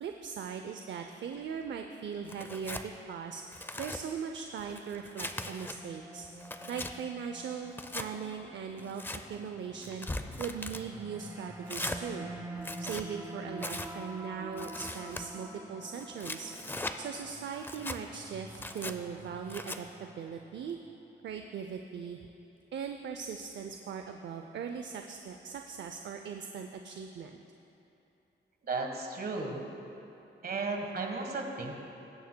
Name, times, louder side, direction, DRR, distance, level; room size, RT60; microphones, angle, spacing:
voice 1, 0.0-6.3 6.7-10.1 10.4-12.3 12.8-16.5 17.0-20.8 21.2-22.3 22.7-27.3, right 6 dB, 65° right, 5 dB, 0.5 m, -40 dB
Tearing, 2.3-2.9 3.4-4.0 4.6-5.8 6.2-6.9 7.7-8.1 8.8-9.2 9.8-10.8 11.7-12.0 12.6-13.1 13.6-13.9 14.6-15.2 16.0-17.0 17.5-18.0 18.5-18.9 19.5-19.8, left 2 dB, 10° left, 0.4 m, -39 dB
sound 1, 5.3-20.6, right 1 dB, 10° right, 1.3 m, -47 dB
voice 2, 28.6-29.6 30.4-31.7, right 3 dB, 50° right, 2 dB, 1.4 m, -34 dB
20.0 x 9.4 x 2.2 m, 2.9 s
wide cardioid pair, 110°, 20 cm